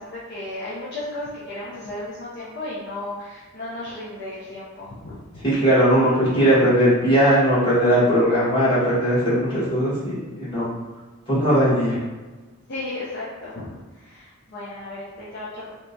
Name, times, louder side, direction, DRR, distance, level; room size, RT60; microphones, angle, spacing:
voice 1, 0.0-5.5 12.7-15.7, left 2 dB, 50° left, -8 dB, 0.4 m, -34 dB
voice 2, 5.4-10.7 11.3-12.0, equal, 25° left, -12 dB, 1.3 m, -19 dB
2.9 x 2.2 x 2.5 m, 1.3 s
head